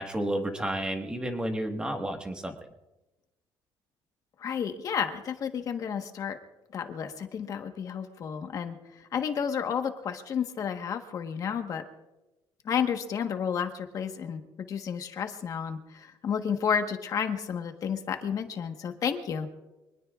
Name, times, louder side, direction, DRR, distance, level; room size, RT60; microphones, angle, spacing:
voice 1, 0.0-2.5, right 1 dB, 10° right, 3 dB, 1.6 m, -31 dB
voice 2, 4.4-6.4 6.7-8.8 9.1-11.8 12.6-19.5, left 7 dB, 40° left, 6 dB, 1.3 m, -31 dB
25.0 x 19.5 x 2.5 m, 1.0 s
cardioid pair, 155°, 9 cm